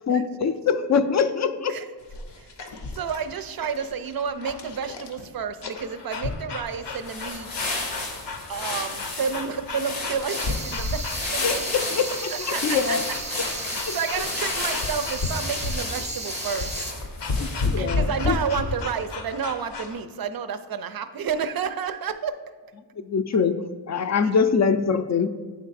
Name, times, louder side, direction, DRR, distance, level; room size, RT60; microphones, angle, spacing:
voice 1, 0.1-1.8 11.4-13.0 13.9-14.0 17.4-18.4 23.0-23.6 23.9-25.3, left 6 dB, 40° left, 10 dB, 0.4 m, -24 dB
sound 1, 2.0-20.0, left 3 dB, 65° left, 0.7 m, -33 dB
voice 2, 3.0-7.5 8.5-11.7 12.3-13.0 13.4-16.7 17.8-22.4 24.2-24.3, right 6 dB, 55° right, 11 dB, 0.5 m, -30 dB
sound 2, 6.9-17.9, left 3 dB, 90° left, 1.1 m, -33 dB
sound 3, 10.3-16.9, right 2 dB, 15° right, 0.7 m, -34 dB
8.3 x 3.2 x 4.0 m, 1.5 s
cardioid pair, 50°, 45 cm